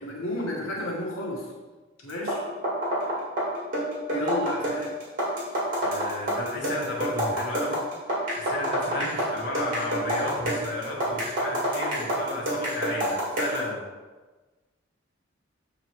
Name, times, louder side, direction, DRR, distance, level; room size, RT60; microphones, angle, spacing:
voice 1, 0.0-1.4 2.0-2.4 4.1-4.9 8.9-9.3, left 1 dB, 90° left, -3 dB, 1.6 m, -32 dB
sound 1, 2.1-13.7, right 1 dB, 45° right, 2.1 m, -28 dB
voice 2, 5.8-7.8 8.3-13.8, left 1 dB, 55° left, -5 dB, 1.5 m, -33 dB
7.6 x 3.9 x 4.7 m, 1.3 s
head